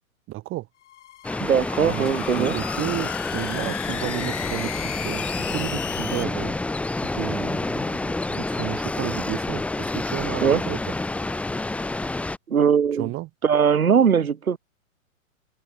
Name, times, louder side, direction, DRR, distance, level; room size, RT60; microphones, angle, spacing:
voice 1, 0.3-0.7 1.8-6.5 7.1-10.9 13.0-13.3, right 18 dB, 30° right, 4.1 m, -32 dB
sound 1, 0.8-6.2, left 12 dB, 55° left, 1.9 m, -35 dB
sound 2, 1.2-12.4, left 2 dB, 5° left, 0.7 m, -28 dB
voice 2, 1.4-2.5 10.4-10.6 12.5-13.1 13.4-14.6, right 7 dB, 85° right, 1.0 m, -20 dB
open air
figure-of-eight pair, 115°, 41 cm